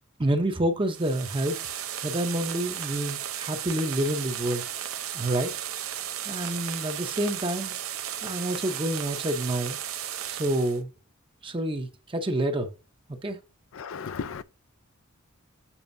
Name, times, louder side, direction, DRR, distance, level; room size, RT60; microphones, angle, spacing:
voice 1, 0.2-1.6 2.0-4.6 5.1-5.5 6.3-7.7 8.2-9.8 10.3-10.9 11.4-12.7 13.2-13.4, right 1 dB, 25° right, 0.7 m, -28 dB
sound 1, 0.9-10.8, right 10 dB, 80° right, 0.8 m, -35 dB
voice 2, 13.8-14.4, left 6 dB, 70° left, 0.4 m, -34 dB
7.1 x 5.5 x 2.6 m
head